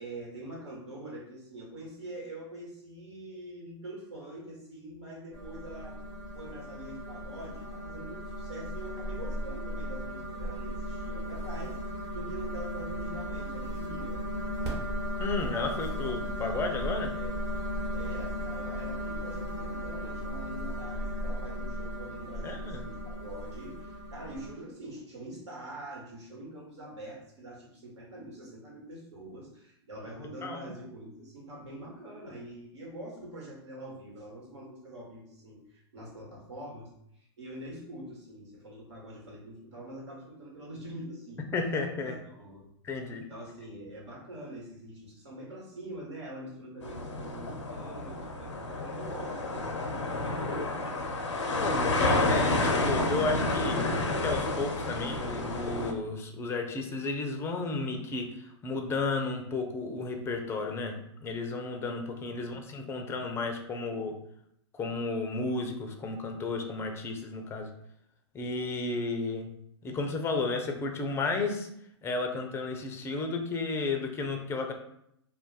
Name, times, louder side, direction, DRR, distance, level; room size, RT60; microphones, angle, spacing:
voice 1, 0.0-6.0 6.3-11.8 12.1-14.2 16.0-16.1 17.1-17.4 17.9-36.9 37.2-41.5 42.0-42.6 43.3-50.0 62.3-62.6, right 1 dB, 75° right, -3 dB, 1.3 m, -44 dB
sound 1, 5.3-24.5, equal, 45° right, 1.2 m, -36 dB
voice 2, 15.2-17.1 22.4-22.8 30.4-30.7 41.5-42.2 42.8-43.3 51.6-53.9 54.2-64.1 64.7-67.7 68.3-69.5 69.8-71.7 72.0-74.7, left 3 dB, 15° left, 4 dB, 0.4 m, -33 dB
sound 2, 46.8-55.9, left 2 dB, 85° left, 0.5 m, -30 dB
2.4 x 2.1 x 4.0 m, 0.74 s
hypercardioid pair, 110°, 15 cm